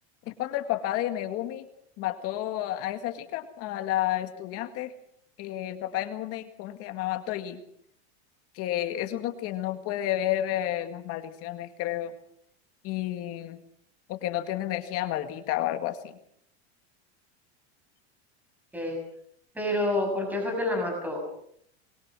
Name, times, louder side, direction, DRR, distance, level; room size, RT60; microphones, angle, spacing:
voice 1, 0.3-1.7 2.0-4.9 5.4-7.6 8.5-12.1 12.8-13.6 14.1-16.2, left 13 dB, 45° left, 8 dB, 2.0 m, -31 dB
voice 2, 19.5-21.4, left 1 dB, 5° right, 2 dB, 6.6 m, -28 dB
26.0 x 22.5 x 6.2 m, 0.69 s
supercardioid pair, 145°, 33 cm